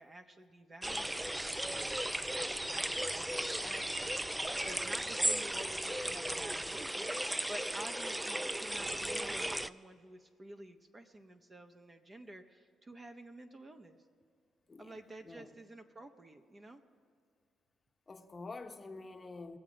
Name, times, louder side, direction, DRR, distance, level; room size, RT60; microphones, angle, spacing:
voice 1, 0.0-14.0 14.8-16.8, right 1 dB, 25° right, 6 dB, 0.8 m, -51 dB
sound 1, 0.8-9.7, right 1 dB, 10° right, 0.3 m, -36 dB
voice 2, 14.7-15.6 18.1-19.6, left 3 dB, 30° left, 6 dB, 0.9 m, -48 dB
22.0 x 7.5 x 5.1 m, 2.3 s
cardioid pair, 90°, 0 cm